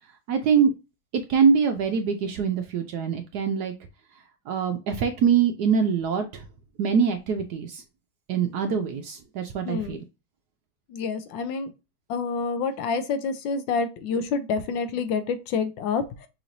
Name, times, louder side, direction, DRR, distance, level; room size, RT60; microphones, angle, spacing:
voice 1, 0.3-0.7 1.3-3.7 4.5-6.4 6.8-7.8 8.3-10.0, right 6 dB, 75° right, 6 dB, 0.9 m, -23 dB
voice 2, 9.6-10.0 10.9-11.7 12.1-16.3, left 5 dB, 80° left, 9 dB, 1.3 m, -28 dB
5.6 x 3.0 x 2.5 m, 0.28 s
omnidirectional pair, 2.1 m